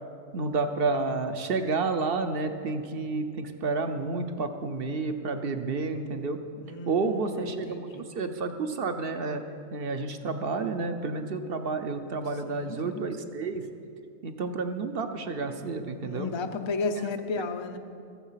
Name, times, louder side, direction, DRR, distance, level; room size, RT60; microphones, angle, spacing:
voice 1, 0.3-6.4 6.9-9.4 9.7-13.7 14.2-16.3, right 4 dB, 50° right, 7 dB, 0.9 m, -30 dB
voice 2, 6.6-8.1 12.5-13.0 16.0-17.8, left 4 dB, 30° left, 8 dB, 0.5 m, -34 dB
21.5 x 7.3 x 5.7 m, 2.4 s
omnidirectional pair, 1.4 m